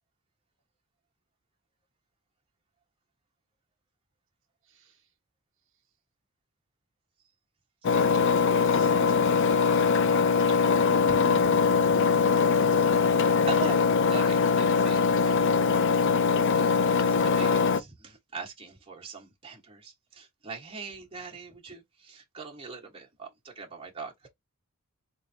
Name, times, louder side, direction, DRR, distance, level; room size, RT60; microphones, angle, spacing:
Engine, 7.8-17.8, left 5 dB, 55° left, 0.4 m, -22 dB
voice 1, 8.5-8.9 10.9-12.1, equal, 60° right, 1.3 m, -42 dB
voice 2, 11.1-11.6 11.8-12.1 12.7-13.8 14.1-16.2 16.5-23.3 23.6-24.3, right 4 dB, 25° right, 1.1 m, -42 dB
4.4 x 3.3 x 2.6 m
head